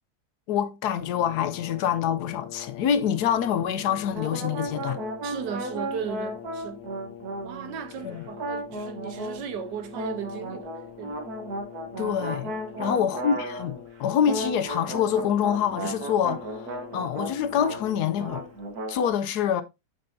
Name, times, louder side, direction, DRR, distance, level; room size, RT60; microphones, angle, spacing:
voice 1, 0.5-5.0 8.0-8.2 12.0-18.4 18.9-19.6, left 8 dB, 70° left, 1.2 m, -26 dB
Brass instrument, 1.0-18.8, left 11 dB, 90° left, 0.6 m, -44 dB
sound 1, 4.1-7.9 8.4-9.4 9.9-13.9 14.2-17.8 18.1-19.1, right 1 dB, 60° right, 1.7 m, -35 dB
voice 2, 5.2-6.8 7.4-10.7 11.0-11.1 12.7-13.1, right 7 dB, 80° right, 1.5 m, -36 dB
7.6 x 5.7 x 2.7 m
omnidirectional pair, 1.8 m